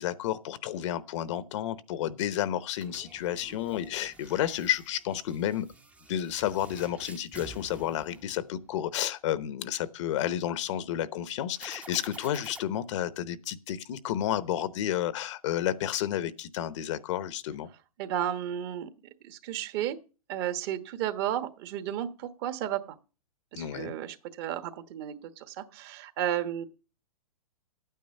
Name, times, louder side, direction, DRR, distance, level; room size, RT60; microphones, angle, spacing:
voice 1, 0.0-5.7 6.1-17.7 23.5-23.9, left 11 dB, 55° left, 0.9 m, -31 dB
sound 1, 2.7-8.9 11.5-12.6, right 3 dB, 5° right, 0.7 m, -50 dB
voice 2, 18.0-18.9 19.2-20.0 20.3-23.0 23.5-26.6, right 11 dB, 40° right, 1.2 m, -33 dB
12.0 x 9.3 x 5.4 m
hypercardioid pair, 140°, 19 cm